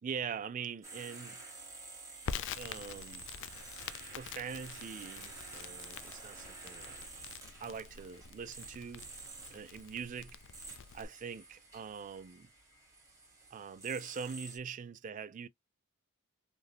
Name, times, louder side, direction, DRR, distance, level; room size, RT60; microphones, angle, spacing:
voice 1, 0.0-1.4 2.5-3.3 4.1-7.0 7.6-9.1 9.5-10.4 10.9-12.5 13.5-15.5, right 6 dB, 35° right, 0.3 m, -43 dB
sound 1, 0.8-14.6, right 3 dB, 15° right, 1.1 m, -50 dB
Crackle, 2.3-11.1, left 7 dB, 55° left, 0.3 m, -46 dB
3.3 x 2.6 x 2.2 m
head